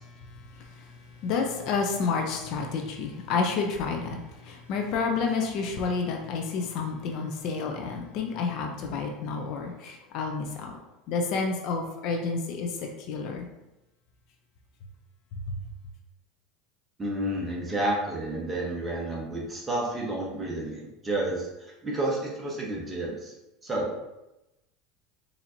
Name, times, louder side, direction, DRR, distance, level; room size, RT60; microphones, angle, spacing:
voice 1, 0.5-0.9 1.2-10.7 11.1-13.5 15.5-15.6, left 4 dB, 55° left, 2 dB, 0.5 m, -30 dB
voice 2, 17.0-23.3 23.6-23.9, right 1 dB, 15° right, -3 dB, 1.0 m, -30 dB
4.3 x 2.7 x 2.6 m, 0.96 s
supercardioid pair, 130°, 0 cm